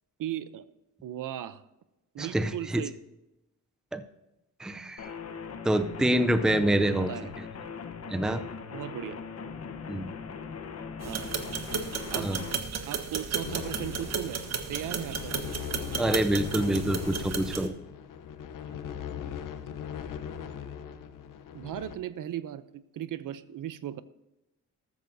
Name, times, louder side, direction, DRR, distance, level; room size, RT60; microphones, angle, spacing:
voice 1, 0.2-0.6 1.0-1.6 2.1-2.9 7.1-7.3 8.7-9.2 11.0-11.3 12.1-12.4 12.9-14.4 14.7-15.9 21.5-24.0, right 11 dB, 70° right, 14 dB, 0.7 m, -37 dB
voice 2, 2.2-2.8 3.9-4.0 4.6-5.1 5.6-7.1 8.1-8.4 9.9-10.1 12.2-12.4 16.0-17.7, right 1 dB, ahead, 10 dB, 0.5 m, -26 dB
sound 1, 5.0-12.6, left 5 dB, 50° left, 1.1 m, -40 dB
sound 2, 11.0-17.7, right 6 dB, 50° right, 1.3 m, -34 dB
sound 3, 13.4-22.0, left 8 dB, 75° left, 0.9 m, -40 dB
14.0 x 13.0 x 2.7 m, 0.96 s
cardioid pair, 120°, 33 cm